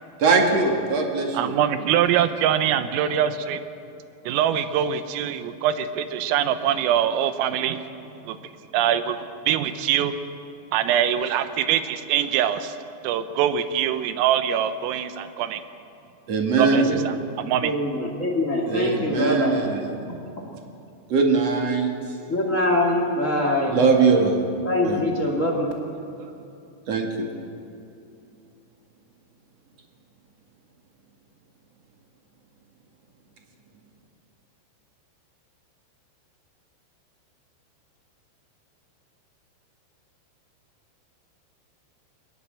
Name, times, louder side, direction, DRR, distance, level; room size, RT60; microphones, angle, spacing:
voice 1, 0.2-1.5 16.3-17.0 18.7-19.8 21.1-21.9 23.7-24.4 24.8-25.0 26.9-27.3, right 4 dB, 50° right, 2 dB, 2.1 m, -21 dB
voice 2, 1.4-3.6 4.3-7.8 8.3-8.4 8.7-9.2 9.5-10.1 10.7-12.8 13.0-15.6 16.6-17.7, right 10 dB, 80° right, 10 dB, 3.7 m, -23 dB
voice 3, 16.8-17.2 17.6-19.6 22.3-23.8 24.6-25.7, left 1 dB, 50° left, 0 dB, 0.9 m, -24 dB
22.0 x 20.0 x 7.6 m, 2.6 s
omnidirectional pair, 6.0 m